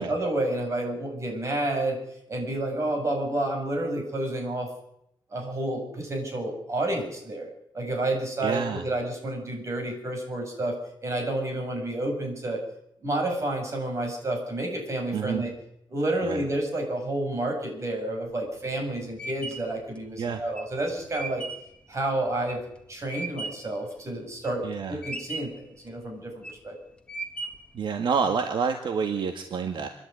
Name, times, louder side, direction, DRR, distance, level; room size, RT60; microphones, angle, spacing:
voice 1, 0.0-2.0 2.3-4.7 5.3-12.6 13.0-15.5 15.9-21.4 21.9-22.6 22.9-26.8, right 1 dB, 35° right, 2 dB, 7.9 m, -30 dB
voice 2, 8.4-8.8 15.1-15.4 16.2-16.4 20.2-20.4 24.6-25.0 27.7-29.9, right 6 dB, 70° right, 6 dB, 1.8 m, -28 dB
sound 1, 18.3-23.8 24.2-24.7 25.0-25.7 26.2-26.7 27.1-27.8, right 2 dB, 10° left, 2.5 m, -37 dB
28.0 x 11.5 x 9.7 m, 0.79 s
wide cardioid pair, 135°, 9 cm